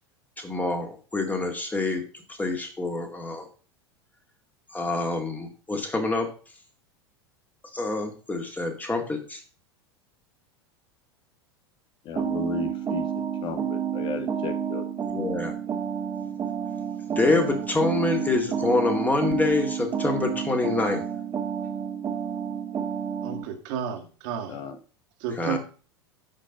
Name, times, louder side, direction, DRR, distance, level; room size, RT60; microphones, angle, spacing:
voice 1, 0.4-2.0 2.3-3.5 4.7-6.3 7.7-9.4 15.1-15.6 17.2-21.1 25.3-25.6, left 3 dB, 10° left, 5 dB, 2.1 m, -26 dB
voice 2, 12.1-13.0 13.4-14.8 24.5-24.7, left 6 dB, 35° left, 10 dB, 1.1 m, -34 dB
sound 1, 12.2-23.4, right 8 dB, 25° right, 1.7 m, -30 dB
voice 3, 23.2-24.6 25.2-25.6, right 8 dB, 50° right, 4 dB, 2.0 m, -32 dB
13.0 x 5.2 x 5.2 m, 0.38 s
figure-of-eight pair, 85°, 14 cm